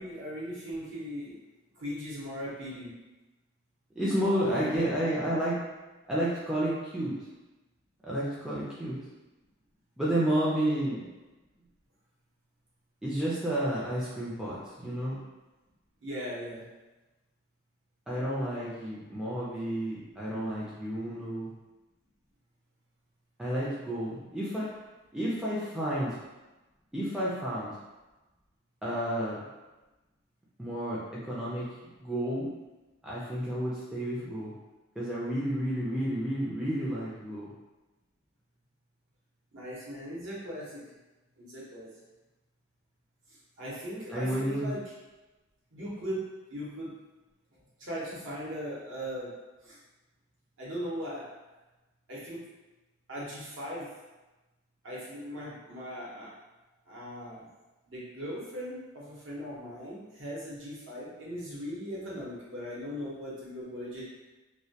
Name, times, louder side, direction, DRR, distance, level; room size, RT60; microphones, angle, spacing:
voice 1, 0.0-1.4 1.7-2.9 4.3-5.4 16.0-16.6 39.5-40.8 41.4-41.9 43.6-44.8 45.7-46.2 46.5-46.9 47.8-49.3 49.6-49.8 50.6-51.3 52.1-52.4 53.1-53.9 54.8-56.3 56.9-57.5 57.9-64.1, equal, 70° right, -6 dB, 0.8 m, -39 dB
voice 2, 4.0-5.6 6.1-7.1 8.0-9.0 10.0-11.0 13.0-15.2 18.1-21.5 23.4-24.7 25.1-26.2 26.9-27.7 28.8-29.4 30.6-31.7 32.0-32.5 33.0-34.5 35.0-37.5 44.1-44.7, right 1 dB, 5° right, -8 dB, 0.3 m, -31 dB
2.2 x 2.1 x 2.7 m, 1.1 s
head